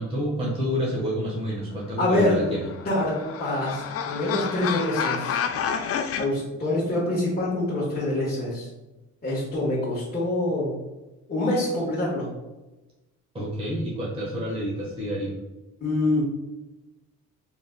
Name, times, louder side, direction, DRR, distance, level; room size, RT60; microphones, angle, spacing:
voice 1, 0.0-2.7 13.3-15.3, equal, 20° right, -6 dB, 1.3 m, -29 dB
voice 2, 2.0-2.4 2.8-5.4 6.2-8.7 9.2-10.7 11.3-12.3 15.8-16.2, left 1 dB, 30° left, -9 dB, 1.4 m, -25 dB
sound 1, 2.4-6.3, left 7 dB, 50° left, 0.4 m, -29 dB
3.7 x 3.6 x 2.3 m, 1.0 s
cardioid pair, 90°, 30 cm